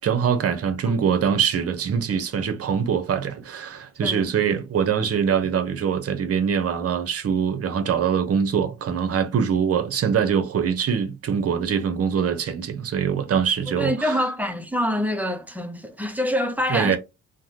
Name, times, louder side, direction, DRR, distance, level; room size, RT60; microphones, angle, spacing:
voice 1, 0.0-14.2 16.7-17.0, right 7 dB, 50° right, 0.8 m, -23 dB
voice 2, 4.0-4.3 13.8-17.0, equal, 5° right, 0.6 m, -26 dB
3.3 x 2.1 x 2.8 m
cardioid pair, 90°, 30 cm